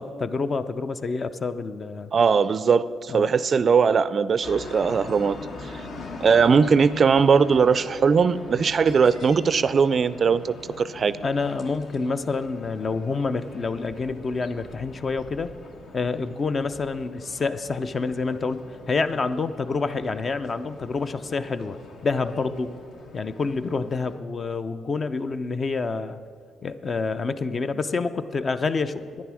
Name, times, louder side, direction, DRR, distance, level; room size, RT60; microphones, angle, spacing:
voice 1, 0.0-2.1 3.1-3.3 11.2-15.5 15.9-18.6 18.9-22.7 23.1-26.2 26.6-29.2, left 4 dB, 40° left, 11 dB, 0.5 m, -28 dB
voice 2, 2.1-5.4 6.2-11.1, right 6 dB, 45° right, 16 dB, 0.3 m, -20 dB
sound 1, 4.4-24.2, left 3 dB, 65° left, 1.2 m, -43 dB
10.5 x 9.5 x 6.2 m, 2.1 s
cardioid pair, 90°, 0 cm